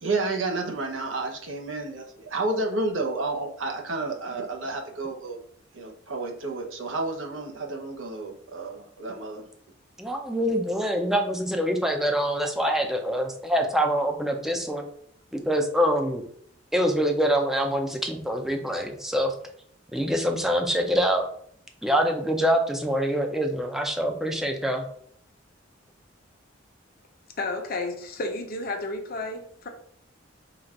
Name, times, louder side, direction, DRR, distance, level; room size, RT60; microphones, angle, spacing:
voice 1, 0.0-5.4 5.7-9.5, right 3 dB, 85° right, 1 dB, 0.9 m, -30 dB
voice 2, 10.0-14.8 15.3-16.2 16.7-19.3 19.9-21.3 21.8-24.8, equal, ahead, 3 dB, 0.5 m, -25 dB
voice 3, 27.4-29.7, left 2 dB, 50° left, 3 dB, 0.7 m, -32 dB
3.9 x 2.4 x 4.4 m, 0.64 s
head